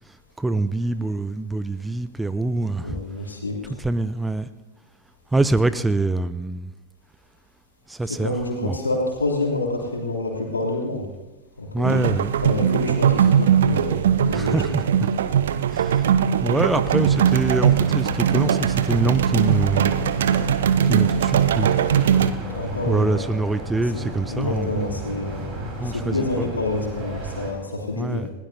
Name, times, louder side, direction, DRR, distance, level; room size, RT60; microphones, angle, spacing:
voice 1, 0.0-3.0 3.6-4.5 5.3-6.7 7.9-8.8 11.7-12.3 14.3-15.1 15.7-16.1 16.4-20.2 20.8-21.8 22.9-25.1 25.8-26.5 27.9-28.3, right 2 dB, 10° right, 0.5 m, -25 dB
voice 2, 2.6-3.6 8.1-11.1 11.6-11.9 12.4-14.6 22.5-23.3 23.9-24.0 24.3-28.3, left 2 dB, 80° left, 3.0 m, -28 dB
sound 1, 11.8-22.3, right 8 dB, 60° right, 0.6 m, -20 dB
sound 2, 17.0-27.5, right 2 dB, 35° right, 4.0 m, -34 dB
20.5 x 16.5 x 2.7 m
figure-of-eight pair, 90°, 0 cm